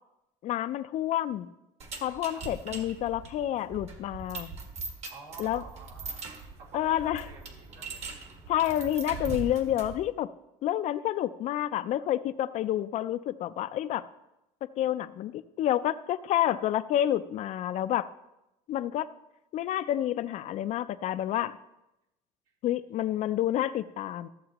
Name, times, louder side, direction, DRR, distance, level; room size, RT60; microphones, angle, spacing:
voice 1, 0.4-1.5 2.0-4.5 5.4-5.6 6.7-7.3 8.5-10.3 10.6-14.1 14.8-18.1 18.7-19.1 19.5-21.6 22.6-24.3, left 12 dB, 50° left, 13 dB, 0.5 m, -29 dB
sound 1, 1.8-10.1, right 4 dB, 45° right, 1.6 m, -41 dB
voice 2, 5.1-6.3 6.6-8.2 8.6-9.0, right 4 dB, 85° right, -3 dB, 3.0 m, -49 dB
14.5 x 7.4 x 3.0 m, 0.91 s
cardioid pair, 130°, 15 cm